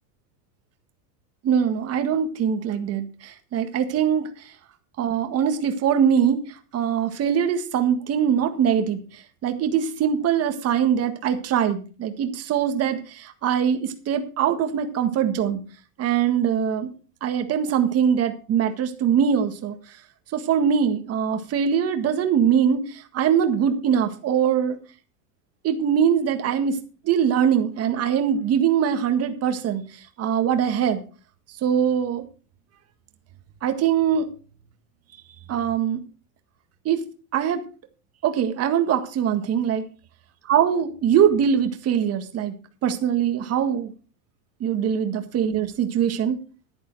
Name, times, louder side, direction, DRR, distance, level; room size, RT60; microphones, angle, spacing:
voice 1, 1.4-4.3 5.0-6.4 6.7-9.0 9.4-15.6 16.0-16.9 17.2-19.8 20.3-22.8 23.1-24.8 25.6-26.8 27.0-29.8 30.2-31.0 31.6-32.2 33.6-34.3 35.5-36.0 36.9-37.0 37.3-37.6 38.2-39.8 40.5-42.5 42.8-43.9 44.6-46.4, right 8 dB, 30° right, 7 dB, 1.7 m, -22 dB
11.5 x 10.5 x 4.7 m, 0.36 s
supercardioid pair, 150°, 50 cm